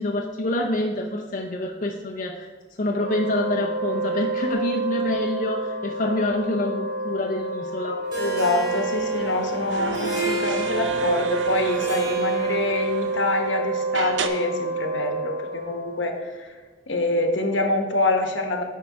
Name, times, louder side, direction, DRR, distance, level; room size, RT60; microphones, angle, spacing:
voice 1, 0.0-2.5 2.8-8.0, left 1 dB, 45° left, 0 dB, 0.6 m, -26 dB
Wind instrument woodwind instrument, 2.9-16.3, right 3 dB, 55° right, 0.9 m, -29 dB
voice 2, 8.1-16.5 16.9-18.6, left 2 dB, 75° left, 4 dB, 1.1 m, -25 dB
Harp, 8.1-13.1, right 1 dB, 20° right, 2.5 m, -34 dB
sound 1, 9.1-13.5 13.9-14.3, right 6 dB, 70° right, 0.6 m, -33 dB
9.2 x 4.7 x 4.8 m, 1.4 s
head